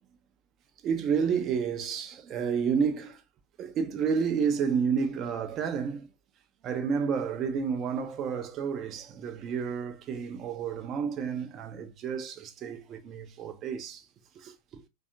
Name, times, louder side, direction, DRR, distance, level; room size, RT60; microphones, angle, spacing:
voice 1, 0.8-3.2 3.6-6.1 6.6-14.1 14.4-14.8, right 6 dB, 30° right, 0.5 m, -30 dB
3.4 x 2.3 x 2.5 m
figure-of-eight pair, 90°, 0 cm